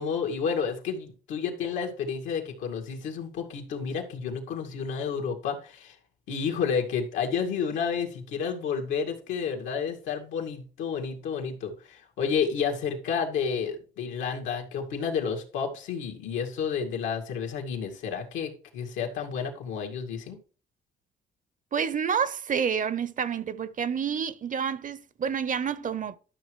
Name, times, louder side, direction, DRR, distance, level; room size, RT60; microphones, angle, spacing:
voice 1, 0.0-6.0 6.3-20.4, left 6 dB, 85° left, 2.2 m, -30 dB
voice 2, 21.7-26.2, right 7 dB, 45° right, 0.8 m, -29 dB
12.5 x 6.3 x 3.2 m
cardioid pair, 75°, 19 cm